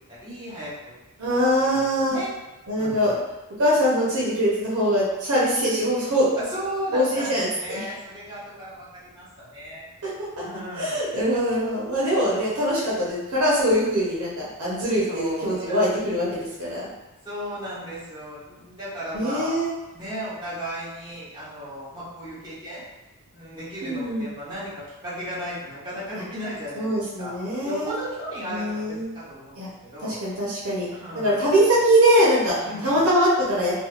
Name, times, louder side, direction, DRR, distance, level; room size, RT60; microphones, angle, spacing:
voice 1, 0.1-0.9 1.6-2.3 2.8-3.1 6.3-9.8 10.4-11.3 12.3-12.6 15.1-15.8 17.2-19.7 19.9-22.8 23.3-27.3 27.6-30.2 31.0-31.7 32.6-33.1, equal, 20° right, -10 dB, 1.3 m, -35 dB
voice 2, 1.2-2.2 2.7-3.1 3.6-6.3 6.9-7.9 10.0-10.1 10.8-14.3 14.6-16.9 19.1-19.7 23.8-24.3 26.8-27.9 28.5-29.1 29.6-29.7 30.0-30.9 31.1-32.6 32.8-33.8, equal, 70° right, -7 dB, 0.7 m, -22 dB
2.9 x 2.3 x 2.4 m, 1.0 s
head